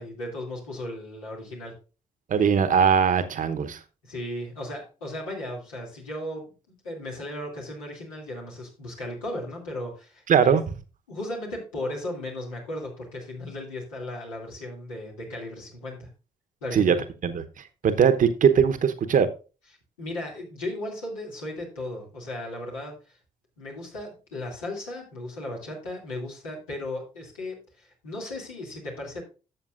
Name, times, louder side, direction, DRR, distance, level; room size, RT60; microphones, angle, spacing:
voice 1, 0.0-1.7 4.0-10.6 11.1-16.1 16.6-17.0 20.0-23.2 23.6-29.2, left 1 dB, 85° left, -3 dB, 2.5 m, -36 dB
voice 2, 2.3-3.8 10.3-10.6 16.7-17.0 17.2-17.4 17.8-19.3, right 7 dB, 50° right, 10 dB, 0.9 m, -20 dB
12.0 x 7.3 x 2.5 m, 0.33 s
hypercardioid pair, 40°, 17 cm